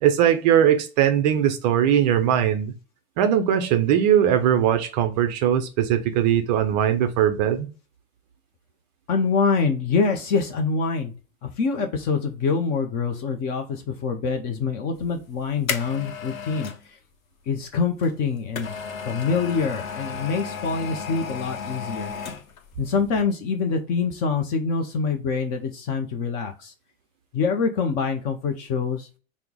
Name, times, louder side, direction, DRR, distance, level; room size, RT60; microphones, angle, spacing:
voice 1, 0.0-2.7 3.2-7.7, right 10 dB, 35° right, 0.4 m, -20 dB
voice 2, 9.1-11.1 11.4-16.7 17.5-18.7 19.1-22.1 22.8-26.7 27.3-29.1, left 5 dB, 25° left, 0.4 m, -25 dB
sound 1, 15.1-16.8 18.0-22.7 23.0-23.1, left 6 dB, 75° left, 0.7 m, -33 dB
4.4 x 2.0 x 3.6 m
figure-of-eight pair, 95°, 42 cm